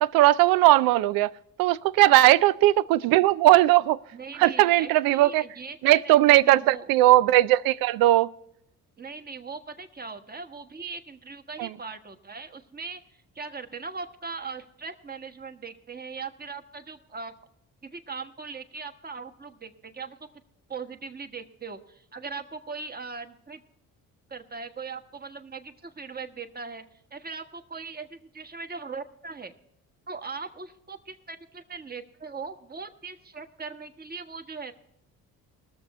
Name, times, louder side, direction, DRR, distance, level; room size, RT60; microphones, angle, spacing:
voice 1, 0.0-1.3 1.6-4.0 4.3-5.4 5.8-8.3 11.6-11.7, right 16 dB, 85° right, 0.5 m, -19 dB
voice 2, 4.1-6.9 9.0-13.0 13.3-17.3 17.8-20.2 20.7-23.6 24.3-26.8 27.1-29.5 30.1-34.7, right 4 dB, 25° right, 1.3 m, -39 dB
20.5 x 7.0 x 4.2 m
cardioid pair, 80°, 34 cm